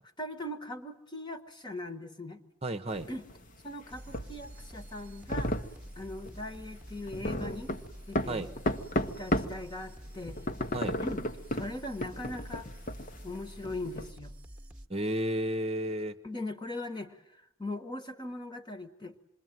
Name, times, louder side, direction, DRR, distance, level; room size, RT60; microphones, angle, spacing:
voice 1, 0.2-2.4 3.1-3.3 3.6-5.5 6.0-7.7 8.1-8.5 9.0-10.4 11.0-11.2 11.5-12.7 13.2-14.3 16.2-19.2, left 1 dB, 20° left, 8 dB, 1.4 m, -40 dB
voice 2, 2.6-3.1 8.3-8.5 10.7-11.0 14.9-16.1, right 1 dB, 30° right, 7 dB, 1.0 m, -32 dB
sound 1, 2.9-9.6 10.0-14.1, left 1 dB, 40° left, 1.1 m, -34 dB
sound 2, 3.9-14.9, equal, 5° right, 1.4 m, -48 dB
27.0 x 22.0 x 9.3 m, 0.79 s
head